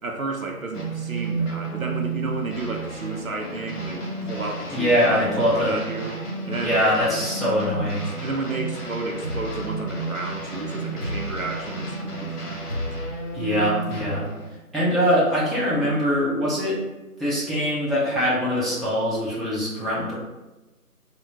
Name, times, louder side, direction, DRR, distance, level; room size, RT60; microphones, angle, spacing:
voice 1, 0.0-6.8 8.0-12.6, right 3 dB, 65° right, 2 dB, 0.5 m, -32 dB
sound 1, 0.7-14.5, right 3 dB, 85° left, 0.9 m, -32 dB
voice 2, 4.7-5.7 6.6-8.1 13.3-14.3 14.7-16.8 17.2-20.1, equal, ahead, -8 dB, 0.5 m, -23 dB
sound 2, 9.2-10.3 11.0-12.0 12.7-13.8, left 1 dB, 40° left, 1.0 m, -34 dB
3.5 x 2.1 x 2.8 m, 1.1 s
figure-of-eight pair, 180°, 45 cm